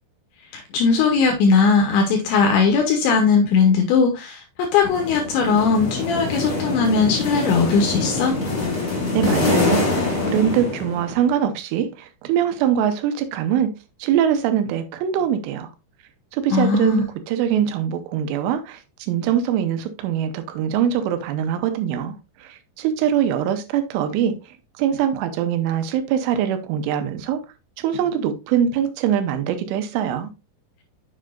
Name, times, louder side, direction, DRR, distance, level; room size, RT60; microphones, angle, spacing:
voice 1, 0.7-4.4 4.7-8.4 16.5-17.0, left 5 dB, 75° left, 3.1 m, -18 dB
sound 1, 4.8-11.3, left 3 dB, 60° left, 0.8 m, -24 dB
voice 2, 8.9-13.7 14.0-15.7 16.3-22.1 22.4-24.3 24.8-27.4 27.8-30.3, right 9 dB, 85° right, 3.3 m, -23 dB
7.5 x 6.7 x 2.6 m
omnidirectional pair, 5.8 m